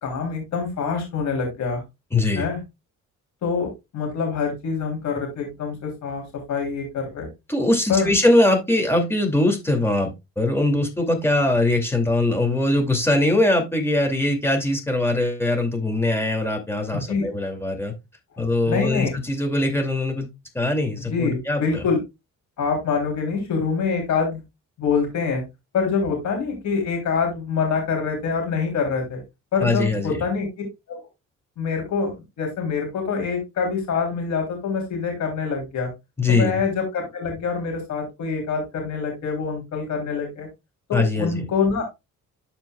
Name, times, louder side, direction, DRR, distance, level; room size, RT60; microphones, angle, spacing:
voice 1, 0.0-1.8 2.3-2.6 3.4-7.3 7.9-8.1 16.9-17.3 18.3-19.1 21.0-22.0 22.6-24.4 24.8-25.4 25.7-29.2 29.5-30.5 30.9-31.0 31.6-35.9 36.3-40.5 40.9-41.8, left 5 dB, 70° left, 1 dB, 3.2 m, -25 dB
voice 2, 2.1-2.5 7.5-10.1 10.4-17.9 18.4-20.3 20.5-21.8 29.6-30.2 36.2-36.6 40.9-41.4, left 2 dB, 10° left, 3 dB, 2.5 m, -21 dB
12.5 x 4.5 x 2.3 m, 0.23 s
cardioid pair, 90°, 30 cm